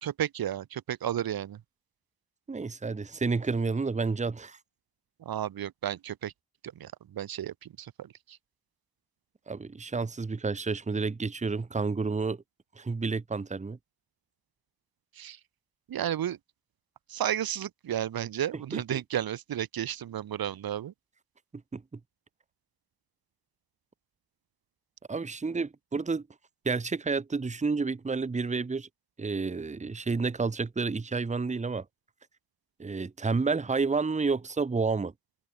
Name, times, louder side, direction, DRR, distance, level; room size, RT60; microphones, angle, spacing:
voice 1, 0.0-1.6 5.2-6.3 6.7-8.4 15.2-15.4 15.9-16.4 17.1-20.9, right 11 dB, 60° right, 1.5 m, -33 dB
voice 2, 2.5-4.6 9.5-12.4 12.8-13.8 18.7-19.0 21.7-22.0 25.1-26.3 26.6-28.9 29.2-31.8 32.8-35.1, right 4 dB, 20° right, 1.0 m, -30 dB
open air
supercardioid pair, 50°, 40 cm